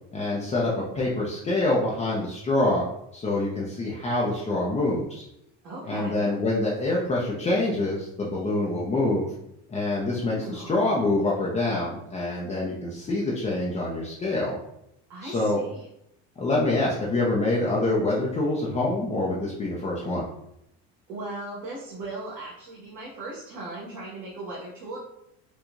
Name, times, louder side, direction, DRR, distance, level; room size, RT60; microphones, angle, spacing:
voice 1, 0.1-2.8 3.1-5.2 5.9-9.3 9.7-14.6 15.2-15.6 16.4-20.2, left 2 dB, 20° left, -5 dB, 0.6 m, -26 dB
voice 2, 5.6-6.1 10.1-10.8 15.1-15.9 21.1-25.0, right 2 dB, 70° right, -7 dB, 1.5 m, -38 dB
4.6 x 2.3 x 2.6 m, 0.80 s
supercardioid pair, 120°, 34 cm